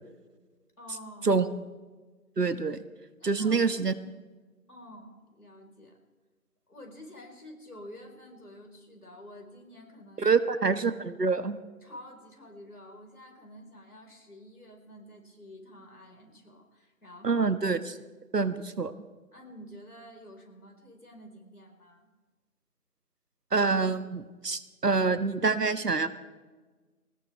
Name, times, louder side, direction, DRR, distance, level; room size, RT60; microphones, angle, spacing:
voice 1, 0.8-1.3 3.2-3.6 4.7-5.9 6.7-10.4 11.8-17.5 19.3-22.1, left 1 dB, 70° left, 2 dB, 4.6 m, -49 dB
voice 2, 2.4-2.8 3.2-3.9 10.2-11.6 17.2-17.8 18.3-18.9 23.5-26.1, right 4 dB, 85° right, 12 dB, 1.4 m, -26 dB
20.5 x 19.5 x 3.5 m, 1.3 s
figure-of-eight pair, 175°, 46 cm